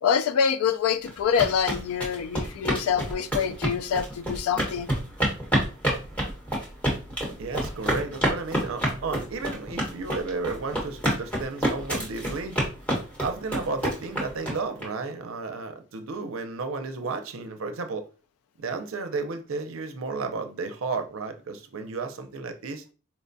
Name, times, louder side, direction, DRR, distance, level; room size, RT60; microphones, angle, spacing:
voice 1, 0.0-4.9, left 7 dB, 80° left, 0.3 m, -25 dB
sound 1, 1.1-14.8, right 1 dB, 5° left, 1.0 m, -28 dB
voice 2, 7.4-12.6 13.2-18.1 18.6-22.8, right 4 dB, 65° right, 0.5 m, -33 dB
4.3 x 2.2 x 2.6 m
head